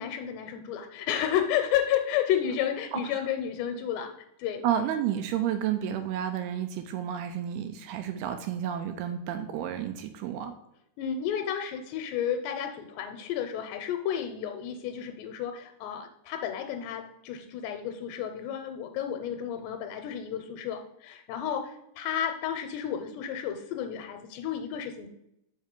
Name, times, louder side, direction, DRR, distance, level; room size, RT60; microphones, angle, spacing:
voice 1, 0.0-4.1 4.4-4.6 11.0-25.1, left 9 dB, 85° left, 6 dB, 2.6 m, -31 dB
voice 2, 4.6-10.5, right 10 dB, 85° right, 7 dB, 2.3 m, -31 dB
6.0 x 5.3 x 5.2 m, 0.81 s
omnidirectional pair, 5.0 m